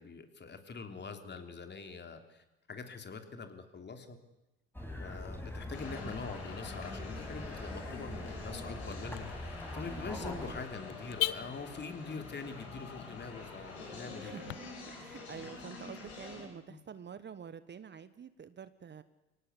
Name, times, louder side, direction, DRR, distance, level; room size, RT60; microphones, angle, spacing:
voice 1, 0.0-4.2 5.0-14.3 16.7-16.8, left 4 dB, 35° left, 7 dB, 3.3 m, -44 dB
sound 1, 4.7-10.6, left 1 dB, 5° left, 5.4 m, -43 dB
Car / Alarm, 5.4-14.6, left 20 dB, 70° left, 0.9 m, -44 dB
sound 2, 5.7-16.4, left 3 dB, 85° left, 6.9 m, -46 dB
voice 2, 10.3-10.6 14.2-14.5 14.9-19.0, right 7 dB, 35° right, 14 dB, 1.3 m, -47 dB
24.0 x 18.5 x 8.3 m, 0.96 s
hypercardioid pair, 60°, 31 cm